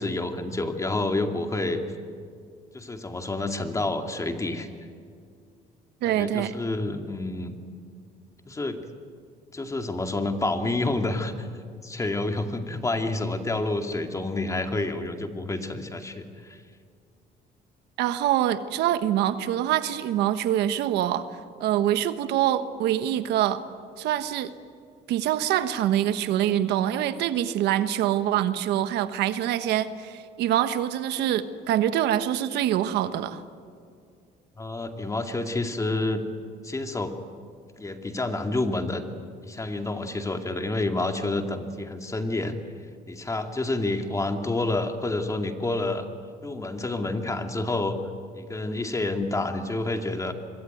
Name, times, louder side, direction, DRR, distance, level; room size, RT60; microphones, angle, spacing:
voice 1, 0.0-1.8 2.7-4.7 6.0-7.5 8.5-8.8 9.5-11.5 11.8-16.6 34.6-36.2 36.6-37.2 37.8-39.0 39.4-42.6 43.1-46.1 46.4-48.0 48.3-50.3, left 2 dB, 20° left, 5 dB, 2.3 m, -28 dB
voice 2, 6.0-6.5 18.0-21.3 21.6-23.6 24.0-24.5 25.1-33.4, right 11 dB, 80° right, 11 dB, 1.3 m, -25 dB
25.5 x 23.0 x 9.3 m, 2.2 s
cardioid pair, 110°, 17 cm